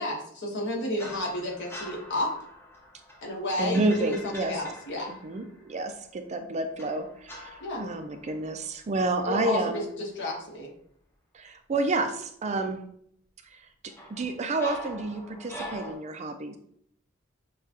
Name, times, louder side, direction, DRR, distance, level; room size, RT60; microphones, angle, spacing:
voice 1, 0.0-2.3 3.2-5.1 7.6-7.8 9.3-10.7, left 1 dB, 60° left, -2 dB, 1.3 m, -31 dB
sound 1, 1.0-5.8 6.8-9.2 9.5-9.8 13.9-16.0, left 1 dB, 10° left, 0.7 m, -44 dB
voice 2, 3.6-4.5 5.1-9.8 11.3-12.8 13.5-13.6 14.1-16.6, right 2 dB, 35° right, 7 dB, 0.4 m, -30 dB
6.5 x 2.3 x 2.9 m, 0.66 s
head